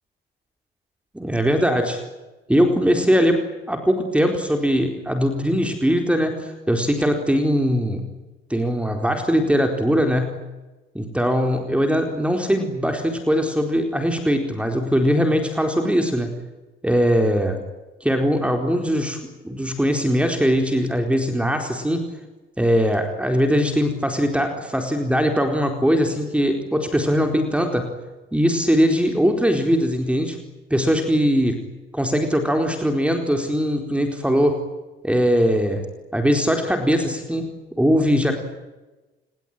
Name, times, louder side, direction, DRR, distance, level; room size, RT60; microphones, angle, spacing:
voice 1, 1.1-2.0 2.5-8.1 8.5-10.4 10.9-16.3 16.8-17.6 18.0-19.2 19.4-22.1 22.6-27.9 28.3-30.4 30.7-31.6 31.9-34.6 35.0-35.8 36.1-37.5 37.8-38.4, equal, 5° right, 5 dB, 4.2 m, -21 dB
27.5 x 21.0 x 9.3 m, 1.1 s
cardioid pair, 90°, 20 cm